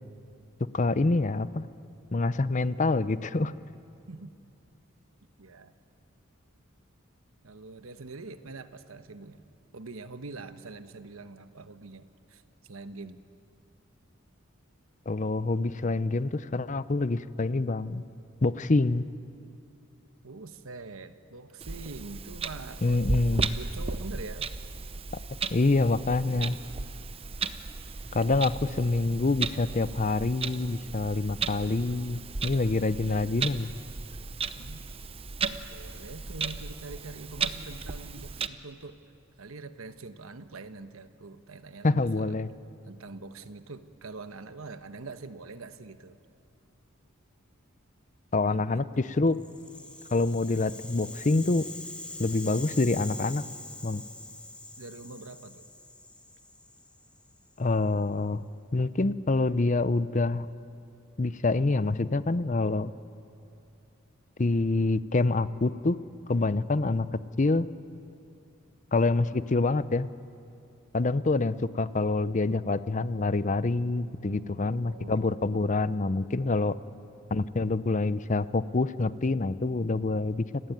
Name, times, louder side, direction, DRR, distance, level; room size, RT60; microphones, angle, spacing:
voice 1, 0.7-1.7 2.1-3.5 15.1-18.0 18.4-19.0 22.8-23.5 25.5-26.6 28.1-28.5 28.8-33.7 41.8-42.5 48.3-49.4 50.1-51.6 52.2-53.4 53.8-54.0 57.6-58.5 58.7-60.5 61.2-62.9 64.4-66.0 66.3-67.1 67.4-67.7 68.9-70.1 70.9-76.8 77.3-80.4, left 3 dB, 35° left, 15 dB, 0.6 m, -26 dB
voice 2, 5.4-5.7 7.4-9.5 9.7-13.2 20.2-23.2 23.5-24.5 28.1-28.4 34.5-34.9 35.5-39.0 39.4-42.3 42.9-46.2 48.3-48.8 54.8-55.7 74.3-75.3, right 3 dB, 90° right, 10 dB, 1.1 m, -44 dB
Clock, 21.6-38.5, right 4 dB, 30° right, 0.7 m, -35 dB
Rattle (instrument), 49.3-57.5, left 2 dB, 5° left, 1.6 m, -44 dB
29.5 x 16.5 x 9.3 m, 2.6 s
head